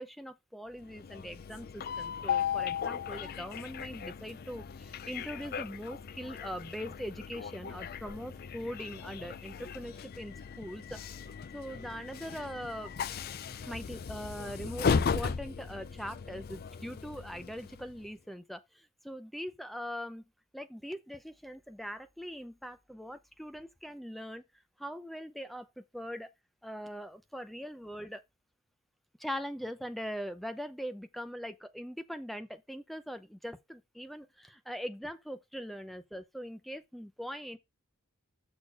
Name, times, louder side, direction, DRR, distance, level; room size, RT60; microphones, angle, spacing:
voice 1, 0.0-11.0 11.5-12.9 13.7-20.2 20.5-24.4 24.8-26.3 26.6-28.2 29.2-37.6, equal, ahead, 0.6 m, -41 dB
Train, 0.8-18.1, left 6 dB, 45° left, 0.4 m, -37 dB
6.7 x 4.1 x 6.3 m
head